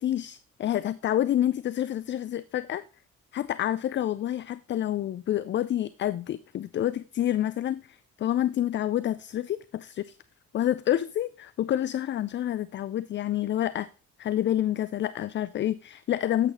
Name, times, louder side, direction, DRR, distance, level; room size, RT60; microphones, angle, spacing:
voice 1, 0.0-2.9 3.3-10.2 10.5-13.9 14.2-16.5, left 12 dB, 30° left, 0.4 m, -28 dB
8.4 x 6.6 x 3.8 m
figure-of-eight pair, 45°, 39 cm